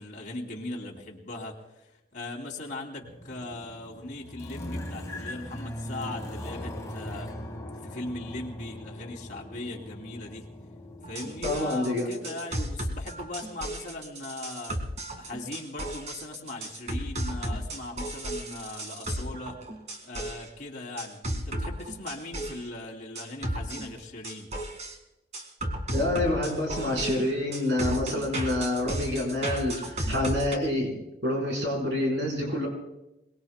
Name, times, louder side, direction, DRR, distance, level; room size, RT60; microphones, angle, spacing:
voice 1, 0.0-7.3 7.8-10.5 11.1-14.8 15.1-19.6 20.0-24.5, left 2 dB, 45° left, 0 dB, 2.8 m, -39 dB
sound 1, 3.0-11.6, left 1 dB, 20° left, 1.3 m, -40 dB
sound 2, 11.0-20.5 21.0-22.7 23.2-25.0 25.3-30.6, right 1 dB, 40° right, 2.0 m, -34 dB
voice 2, 11.4-12.4 25.9-30.9 31.2-32.7, left 1 dB, 80° right, -1 dB, 4.3 m, -27 dB
27.0 x 20.0 x 2.2 m, 0.93 s
head